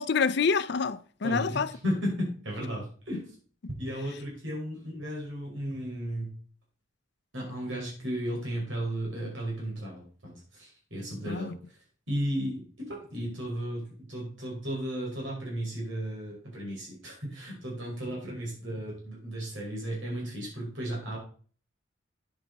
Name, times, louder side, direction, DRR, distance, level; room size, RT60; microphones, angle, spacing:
voice 1, 0.0-1.7 3.1-3.2 11.3-11.6, left 5 dB, 60° left, 0.5 m, -27 dB
voice 2, 1.2-3.3 3.8-6.3 7.3-11.5 12.1-21.2, equal, 80° right, 5.0 m, -34 dB
9.7 x 8.2 x 4.1 m
head